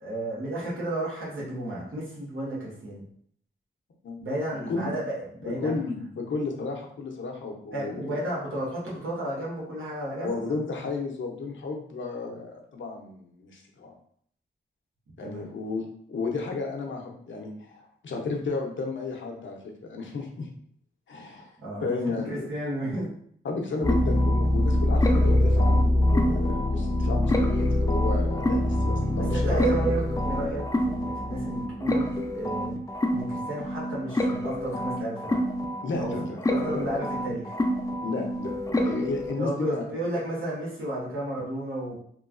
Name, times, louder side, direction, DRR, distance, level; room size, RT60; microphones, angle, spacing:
voice 1, 0.0-3.0 4.2-5.8 7.7-10.4 12.2-12.4 15.2-15.5 21.6-23.1 29.3-32.8 33.1-35.4 36.0-36.1 36.5-37.5 39.4-41.9, right 1 dB, 90° right, -5 dB, 1.0 m, -32 dB
voice 2, 4.5-4.8 5.4-8.2 10.2-13.9 15.2-20.5 21.1-21.5 21.8-22.5 23.4-29.6 35.8-37.1 38.0-39.8, left 3 dB, 70° left, 1 dB, 0.7 m, -33 dB
sound 1, 23.8-39.3, left 1 dB, 15° left, 0.4 m, -25 dB
3.0 x 2.3 x 2.4 m, 0.64 s
cardioid pair, 55°, 21 cm